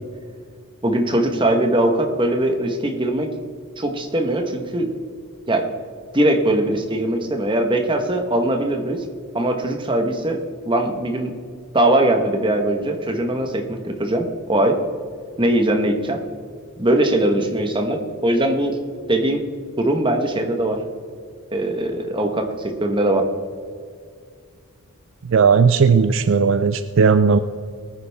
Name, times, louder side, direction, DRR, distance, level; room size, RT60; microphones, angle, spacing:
voice 1, 0.8-3.3 3.8-4.9 5.5-5.7 6.1-9.0 9.3-11.3 11.7-14.8 15.4-16.2 16.8-18.8 19.1-19.4 19.8-20.8 21.5-23.2, right 1 dB, 20° right, 4 dB, 1.2 m, -21 dB
voice 2, 25.2-27.4, right 5 dB, 60° right, 12 dB, 0.4 m, -16 dB
19.5 x 9.8 x 3.5 m, 2.1 s
head